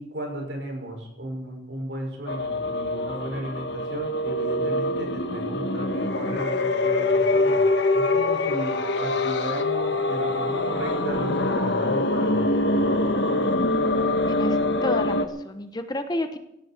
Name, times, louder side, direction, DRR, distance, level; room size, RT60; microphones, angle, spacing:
voice 1, 0.0-7.6 7.9-13.0, right 1 dB, 70° right, 1 dB, 6.5 m, -34 dB
sound 1, 2.3-15.3, left 2 dB, 70° left, 1.5 m, -24 dB
voice 2, 14.3-16.4, left 1 dB, 20° left, 8 dB, 1.2 m, -31 dB
17.0 x 17.0 x 4.7 m, 0.83 s
head